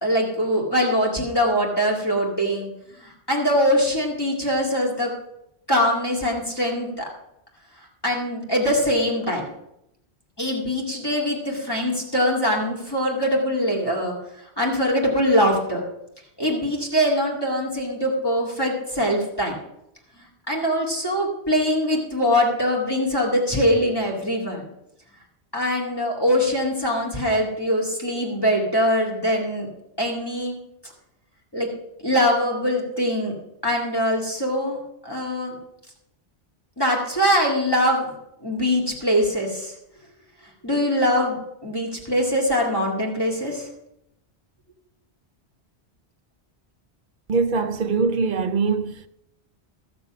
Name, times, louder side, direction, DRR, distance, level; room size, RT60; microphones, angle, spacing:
voice 1, 0.0-2.7 3.0-5.1 5.7-7.1 8.0-9.5 10.4-14.1 14.6-15.8 16.4-19.6 20.5-24.7 25.5-29.7 30.0-30.6 31.5-31.7 32.0-33.3 33.6-35.6 36.8-38.1 38.4-39.7 40.6-43.7, equal, 20° left, 2.1 m, -22 dB
voice 2, 47.3-49.1, right 4 dB, 55° right, 0.7 m, -22 dB
15.0 x 6.9 x 5.9 m
omnidirectional pair, 1.1 m